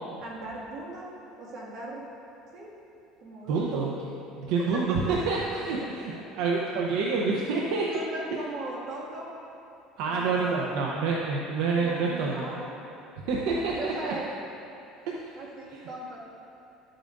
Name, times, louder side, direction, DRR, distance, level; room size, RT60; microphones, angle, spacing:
voice 1, 0.2-1.1 1.4-2.1 2.5-2.7 3.2-3.9 4.7-5.2 6.4-6.5 7.9-9.3 10.1-11.1 11.8-12.8 13.3-14.3 15.4-16.2, right 2 dB, 55° right, -4 dB, 2.0 m, -38 dB
voice 2, 3.5-3.9 4.4-7.9 10.0-12.5 13.3-14.1 15.1-15.4 15.7-15.8, right 4 dB, 80° right, -2 dB, 0.8 m, -28 dB
11.5 x 8.8 x 2.6 m, 2.7 s
cardioid pair, 135°, 0 cm